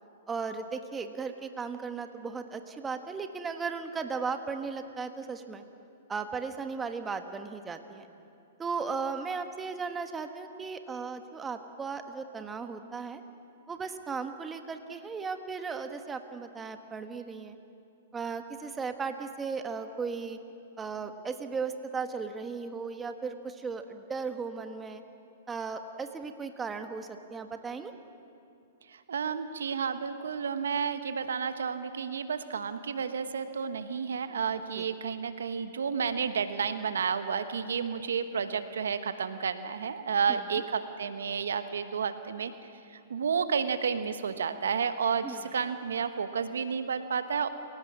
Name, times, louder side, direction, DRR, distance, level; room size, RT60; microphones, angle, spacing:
voice 1, 0.3-5.6 6.1-8.0 8.6-13.2 13.7-17.6 18.1-20.4 20.8-25.0 25.5-27.9 34.7-34.8 40.3-40.4 45.2-45.4, right 5 dB, 15° right, 7 dB, 1.4 m, -36 dB
voice 2, 28.9-42.5 42.9-47.5, right 6 dB, 80° right, 10 dB, 1.1 m, -31 dB
28.5 x 17.0 x 6.2 m, 2.7 s
hypercardioid pair, 120°, 0 cm